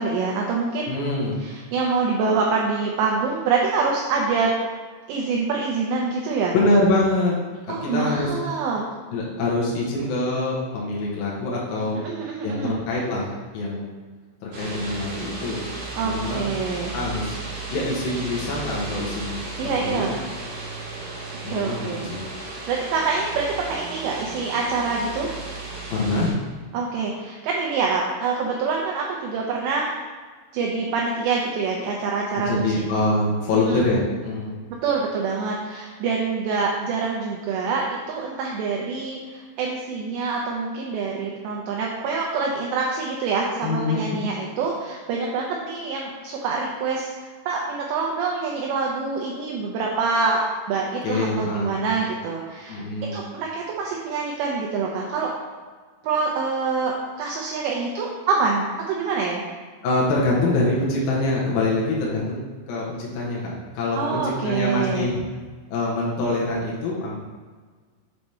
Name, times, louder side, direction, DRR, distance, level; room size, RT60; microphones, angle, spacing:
voice 1, 0.0-0.9 1.4-4.5 5.1-6.5 7.7-8.9 12.0-12.8 15.9-16.9 19.6-20.2 21.5-22.1 22.7-25.3 26.7-30.0 30.5-32.7 33.7-33.8 34.8-52.8 53.1-55.3 56.0-59.4 63.9-65.1, right 4 dB, 85° right, -1 dB, 2.5 m, -25 dB
voice 2, 0.9-1.4 6.5-7.4 7.7-8.3 9.1-12.1 12.4-13.9 14.4-15.6 16.0-16.4 16.9-17.4 17.7-20.1 21.4-22.2 25.9-26.4 32.4-34.5 43.6-44.2 51.0-51.7 52.7-53.2 59.8-65.2 65.7-67.2, left 2 dB, 80° left, -5 dB, 2.2 m, -25 dB
sound 1, 14.5-26.3, right 3 dB, 65° right, 1.5 m, -35 dB
7.7 x 3.4 x 4.2 m, 1.5 s
omnidirectional pair, 5.7 m